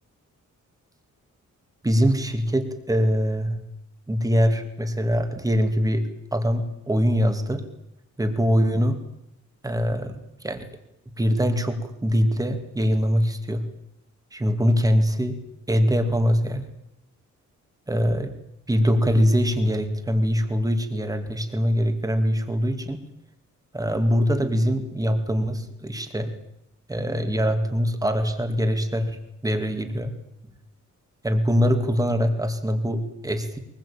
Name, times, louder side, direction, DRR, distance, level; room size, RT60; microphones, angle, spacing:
voice 1, 1.8-3.6 4.1-7.6 8.2-9.0 9.6-10.6 11.2-13.6 14.3-15.4 15.7-16.7 17.9-18.3 18.7-23.0 23.7-26.3 26.9-30.1 31.2-33.6, equal, 10° right, 7 dB, 2.4 m, -23 dB
23.0 x 20.5 x 8.7 m, 0.81 s
wide cardioid pair, 165°, 30 cm